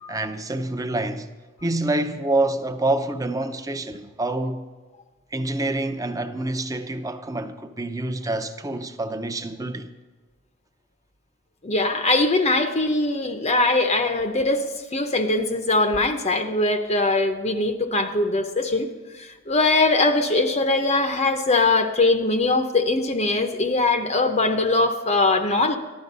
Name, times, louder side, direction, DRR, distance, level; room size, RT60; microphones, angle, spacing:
voice 1, 0.1-1.3 1.6-4.7 5.3-9.9, right 2 dB, 15° right, 0.7 m, -27 dB
voice 2, 11.6-14.7 14.9-18.9 19.1-25.8, left 2 dB, 35° left, 0.7 m, -21 dB
14.5 x 11.5 x 5.4 m
head